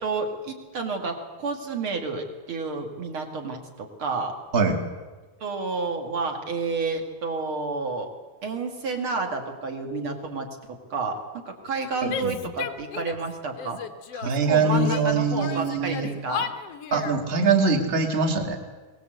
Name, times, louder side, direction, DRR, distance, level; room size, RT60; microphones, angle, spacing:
voice 1, 0.0-4.3 5.4-8.1 8.4-11.2 11.4-13.8 14.2-16.5, right 4 dB, 35° right, 3 dB, 2.8 m, -30 dB
voice 2, 4.5-4.8 12.0-12.3 14.2-16.1 16.9-18.6, right 4 dB, 20° right, 4 dB, 1.8 m, -23 dB
Female speech woman speaking / Yell, 12.1-13.3 13.6-15.0 15.4-17.2, left 7 dB, 70° left, 1.5 m, -34 dB
23.0 x 20.0 x 8.0 m, 1.3 s
omnidirectional pair, 4.5 m